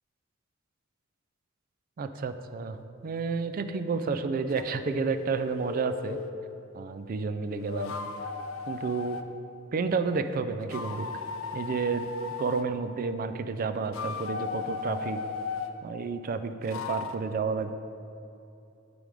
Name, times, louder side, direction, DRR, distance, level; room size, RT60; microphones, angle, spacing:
voice 1, 2.0-2.8 3.0-6.2 6.7-7.9 8.7-9.2 9.7-11.1 11.5-12.1 12.4-15.2 15.8-17.8, right 4 dB, 45° right, 10 dB, 0.3 m, -30 dB
sound 1, 4.5-6.4 7.5-9.3 10.6-12.7 13.8-15.8 16.6-17.2, left 5 dB, 85° left, 0.5 m, -36 dB
8.9 x 3.5 x 4.8 m, 2.8 s
head